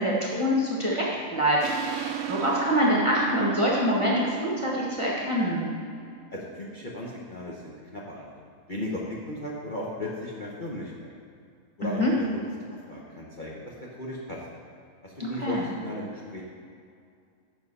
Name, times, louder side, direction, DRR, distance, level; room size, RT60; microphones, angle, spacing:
voice 1, 0.0-5.6 11.8-12.1 15.2-15.6, equal, 20° right, -5 dB, 1.2 m, -25 dB
sound 1, 1.6-6.9, right 11 dB, 80° right, 1.2 m, -36 dB
voice 2, 6.3-8.3 8.7-11.1 11.8-12.4 12.9-14.4 15.0-16.4, left 1 dB, 35° left, -5 dB, 1.1 m, -36 dB
7.5 x 6.1 x 5.5 m, 2.3 s
omnidirectional pair, 1.7 m